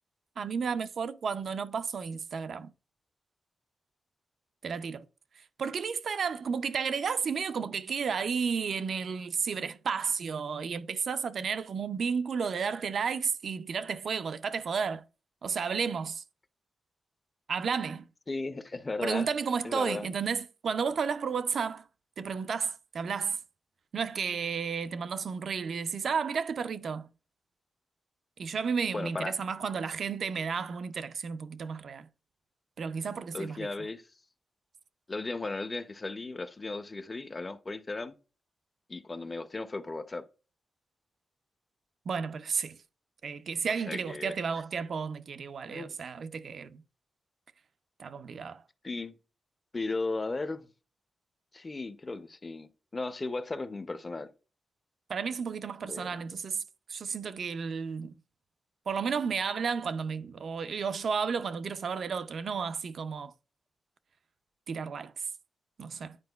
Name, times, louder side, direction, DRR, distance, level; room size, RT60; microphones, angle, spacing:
voice 1, 0.4-2.7 4.6-5.0 5.6-15.0 15.4-16.2 17.5-18.0 19.0-21.9 22.2-23.4 23.9-27.1 28.4-32.1 32.8-33.7 42.1-42.8 43.2-46.8 48.0-48.6 55.1-56.6 56.9-58.1 58.9-63.3 64.7-65.1 65.8-66.2, right 6 dB, 60° right, 0.4 m, -32 dB
voice 2, 18.3-19.3 19.6-20.1 28.9-29.3 33.3-34.0 35.1-38.1 38.9-40.2 43.9-44.3 45.7-46.0 48.8-49.1 49.7-50.7 51.5-54.3 55.9-56.2, left 3 dB, 25° left, 0.5 m, -36 dB
9.6 x 4.4 x 2.2 m
wide cardioid pair, 145°, 0 cm